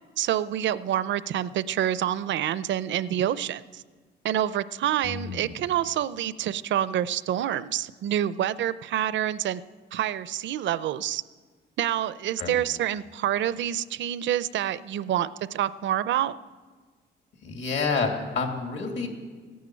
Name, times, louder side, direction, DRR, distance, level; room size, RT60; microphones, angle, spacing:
voice 1, 0.2-3.8 4.2-9.6 9.9-11.2 11.8-16.3, right 11 dB, 70° right, 16 dB, 0.5 m, -27 dB
voice 2, 5.0-5.5 12.4-12.5 17.4-19.1, left 4 dB, 70° left, 3 dB, 2.6 m, -29 dB
14.5 x 9.4 x 9.0 m, 1.5 s
cardioid pair, 90°, 20 cm